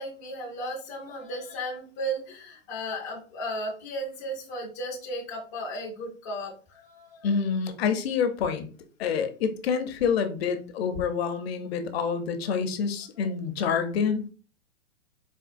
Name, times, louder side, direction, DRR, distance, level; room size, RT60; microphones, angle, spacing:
voice 1, 0.0-7.3 13.2-13.3, equal, 15° left, -3 dB, 0.3 m, -35 dB
voice 2, 7.2-8.7 9.0-14.3, left 6 dB, 55° left, 8 dB, 0.6 m, -27 dB
4.3 x 2.1 x 2.4 m, 0.37 s
hypercardioid pair, 145°, 39 cm